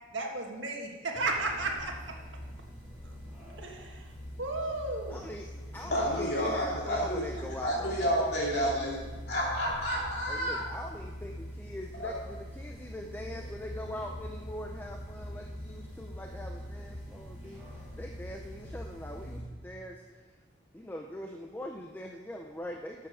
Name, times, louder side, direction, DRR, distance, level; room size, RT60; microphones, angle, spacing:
voice 1, 0.1-2.0 3.0-3.1 3.6-4.1 4.4-5.2, right 2 dB, 75° right, 2 dB, 1.6 m, -34 dB
sound 1, 1.1-19.3, equal, 5° right, 4.1 m, -43 dB
voice 2, 5.1-8.3 10.3-20.2 20.7-23.1, left 1 dB, 10° left, 2 dB, 0.5 m, -42 dB
voice 3, 5.7-7.2 7.6-9.0 9.3-10.6 12.0-12.1, equal, 55° left, -4 dB, 3.1 m, -30 dB
12.0 x 7.4 x 5.0 m, 1.3 s
head